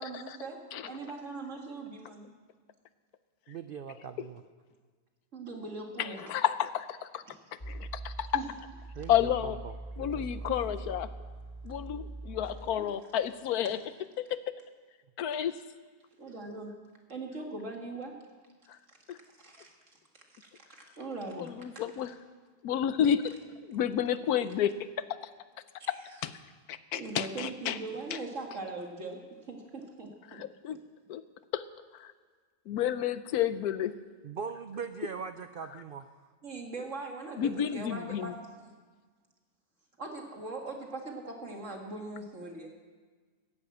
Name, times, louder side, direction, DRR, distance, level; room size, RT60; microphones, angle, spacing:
voice 1, 0.0-2.3 5.3-6.2 7.3-7.4 8.3-8.5 10.5-10.6 12.8-12.9 16.2-16.7 17.1-18.2 18.9-19.0 19.4-19.7 20.3-21.8 25.8-26.0 26.9-29.2 29.5-30.8 36.4-38.3 38.6-38.7 40.0-42.7, right 3 dB, 50° right, 1 dB, 2.2 m, -41 dB
voice 2, 3.5-4.4 8.9-10.5 34.2-36.2, right 6 dB, 80° right, 9 dB, 0.5 m, -41 dB
voice 3, 6.0-7.2 7.7-8.3 9.1-9.6 10.0-11.1 11.6-13.8 14.2-14.6 15.2-15.6 19.1-19.2 21.4-22.1 22.6-23.4 23.6-25.2 25.9-26.0 26.2-26.4 26.7-27.8 28.1-28.2 30.3-30.8 31.1-31.2 31.5-31.6 32.0-32.1 32.7-33.9 37.4-38.3, left 9 dB, 75° left, 13 dB, 1.2 m, -31 dB
sound 1, 7.6-12.6, right 2 dB, 20° left, 1.5 m, -42 dB
14.0 x 10.5 x 8.6 m, 1.5 s
omnidirectional pair, 1.7 m